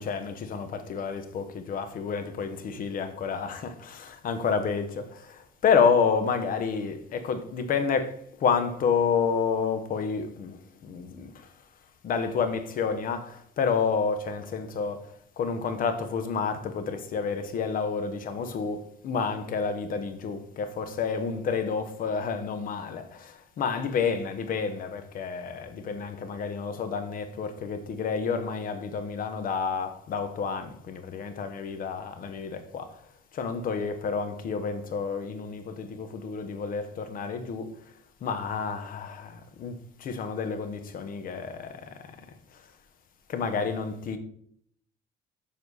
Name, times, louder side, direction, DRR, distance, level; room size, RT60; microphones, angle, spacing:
voice 1, 0.0-11.5 12.0-33.1 33.3-37.8 38.2-42.1 42.5-42.6 43.3-44.2, left 5 dB, 55° left, 1.2 m, -29 dB
7.4 x 6.6 x 4.1 m
cardioid pair, 110°, 17 cm